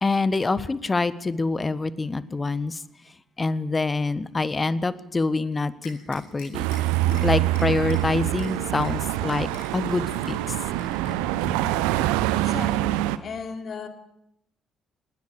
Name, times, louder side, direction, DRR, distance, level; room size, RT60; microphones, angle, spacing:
voice 1, 0.0-2.8 3.4-6.6 7.2-10.4, left 3 dB, 25° left, 17 dB, 1.3 m, -26 dB
sound 1, 5.8-6.8 7.1-7.2 7.5-8.0 8.4-8.5 8.8-8.9 9.3-10.3 10.7-11.4, left 6 dB, 70° left, 4.8 m, -45 dB
sound 2, 6.5-13.2, right 15 dB, 70° right, 0.9 m, -25 dB
voice 2, 12.3-13.9, left 5 dB, 45° left, 6 dB, 3.3 m, -37 dB
19.5 x 19.0 x 8.6 m, 0.77 s
figure-of-eight pair, 45°, 0 cm